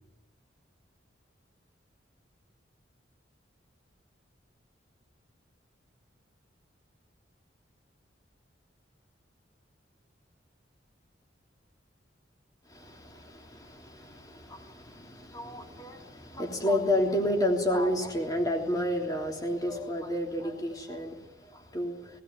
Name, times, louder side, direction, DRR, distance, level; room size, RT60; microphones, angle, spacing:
voice 1, 12.7-22.2, left 1 dB, 20° left, 3.1 m, -31 dB
19.5 x 17.0 x 9.6 m
head